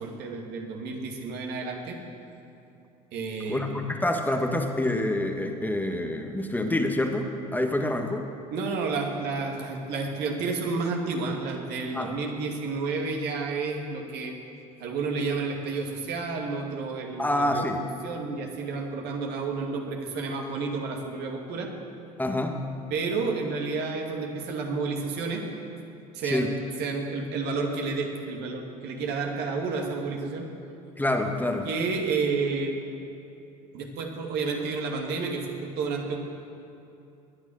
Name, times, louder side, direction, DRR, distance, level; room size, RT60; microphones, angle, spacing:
voice 1, 0.0-2.0 3.1-3.7 8.5-14.3 14.8-21.7 22.9-25.4 26.1-26.5 26.8-30.5 31.6-32.7 33.7-36.2, right 4 dB, 55° right, 2 dB, 2.4 m, -30 dB
voice 2, 3.5-8.3 11.9-12.1 17.2-17.8 22.2-22.6 26.2-26.5 31.0-31.7, left 1 dB, 10° left, 3 dB, 1.6 m, -27 dB
20.5 x 10.0 x 6.4 m, 2.7 s
hypercardioid pair, 70°, 20 cm